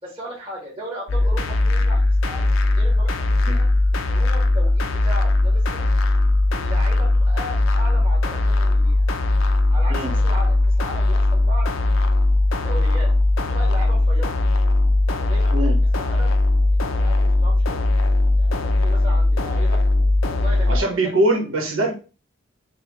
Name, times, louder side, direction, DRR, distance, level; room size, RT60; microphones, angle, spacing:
voice 1, 0.0-5.9 6.5-9.0 9.7-11.7 12.5-14.3 15.1-16.3 16.7-17.8 18.4-19.8 20.3-21.2, right 1 dB, 25° right, -7 dB, 1.5 m, -37 dB
sound 1, 1.1-20.8, left 2 dB, 80° left, 0.5 m, -19 dB
voice 2, 20.7-21.9, right 1 dB, 85° right, 1 dB, 1.2 m, -22 dB
5.5 x 2.3 x 3.0 m, 0.33 s
head